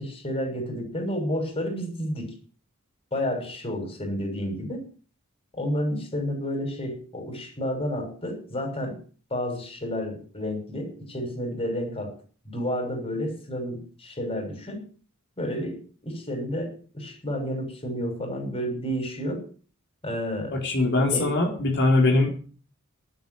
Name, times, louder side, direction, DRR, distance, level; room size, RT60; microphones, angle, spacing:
voice 1, 0.0-2.3 3.1-4.8 5.5-9.0 9.3-12.1 12.4-14.8 15.4-19.5 20.0-20.6 21.1-21.3, equal, 30° left, 3 dB, 6.6 m, -30 dB
voice 2, 20.5-22.4, left 2 dB, 55° left, 0 dB, 4.2 m, -22 dB
12.0 x 9.8 x 9.6 m, 0.41 s
head